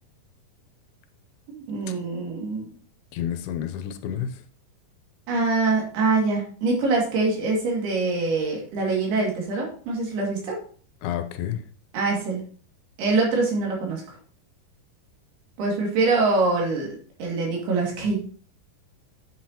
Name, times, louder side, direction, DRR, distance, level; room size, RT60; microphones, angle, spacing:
voice 1, 1.5-2.7 5.3-10.6 11.9-12.4 13.0-14.0 15.6-16.9 17.2-18.2, right 3 dB, 85° right, -1 dB, 4.3 m, -24 dB
voice 2, 3.1-4.4 11.0-11.6, left 10 dB, 85° left, 8 dB, 2.6 m, -30 dB
8.6 x 7.8 x 2.9 m, 0.44 s
omnidirectional pair, 4.4 m